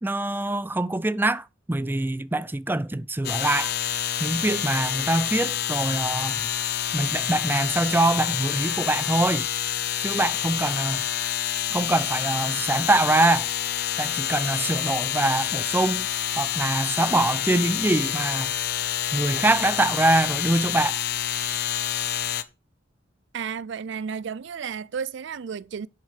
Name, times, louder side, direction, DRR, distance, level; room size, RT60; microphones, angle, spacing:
voice 1, 0.0-3.7 4.2-6.5 6.9-9.5 10.0-11.0 11.7-13.5 14.0-16.1 16.4-18.5 19.1-21.0, right 2 dB, 10° right, 0.5 m, -24 dB
sound 1, 3.2-22.4, left 11 dB, 55° left, 0.8 m, -28 dB
voice 2, 23.3-25.9, right 6 dB, 65° right, 0.4 m, -32 dB
8.3 x 6.6 x 6.6 m
head